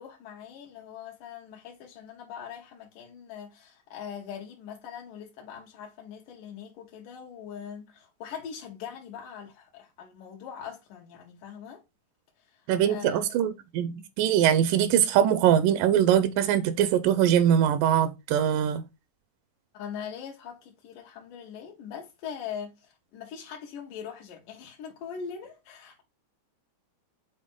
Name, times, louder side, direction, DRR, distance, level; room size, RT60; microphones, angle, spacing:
voice 1, 0.0-11.8 12.5-12.6 12.9-13.2 19.7-26.0, left 7 dB, 80° left, 2.6 m, -41 dB
voice 2, 12.7-18.8, right 10 dB, 85° right, 2.3 m, -22 dB
7.4 x 4.0 x 3.7 m
omnidirectional pair, 3.7 m